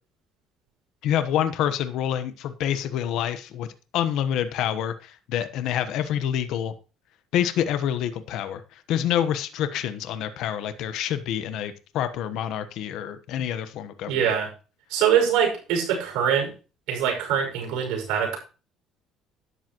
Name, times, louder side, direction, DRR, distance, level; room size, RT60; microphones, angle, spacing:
voice 1, 1.0-3.7 3.9-6.7 7.3-14.1, left 10 dB, 75° left, 10 dB, 1.1 m, -27 dB
voice 2, 14.1-14.5 14.9-16.5 16.9-18.4, right 8 dB, 90° right, 1 dB, 5.9 m, -23 dB
12.5 x 10.5 x 3.1 m, 0.34 s
cardioid pair, 125°, 0 cm